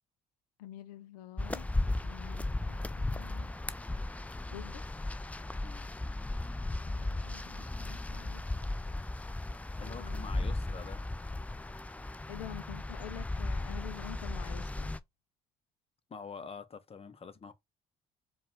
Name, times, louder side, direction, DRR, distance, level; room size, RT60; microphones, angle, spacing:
voice 1, 0.6-1.7 2.0-3.5 4.5-4.9 6.9-8.4 9.8-10.5 12.3-14.9, left 12 dB, 90° left, 0.5 m, -48 dB
sound 1, 1.4-15.0, left 2 dB, 5° left, 0.4 m, -36 dB
voice 2, 5.6-6.1 9.8-11.1 16.1-17.5, left 5 dB, 30° left, 0.9 m, -46 dB
4.6 x 2.4 x 3.4 m
hypercardioid pair, 60°, 20 cm